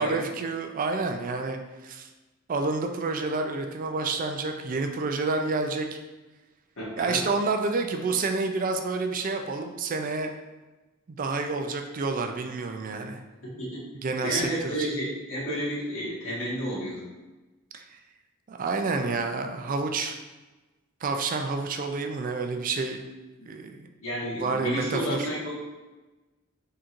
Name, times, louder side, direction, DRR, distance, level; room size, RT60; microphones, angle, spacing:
voice 1, 0.0-2.1 2.5-6.0 7.0-10.3 11.2-13.2 14.0-14.9 17.7-18.0 18.5-20.2 21.0-23.1 23.5-23.9 24.4-25.3, right 3 dB, 40° right, 5 dB, 0.4 m, -29 dB
voice 2, 6.8-7.3 13.6-13.8 14.2-17.0 23.4-23.5 24.0-25.5, equal, 70° left, -6 dB, 1.5 m, -31 dB
4.3 x 3.8 x 2.5 m, 1.1 s
head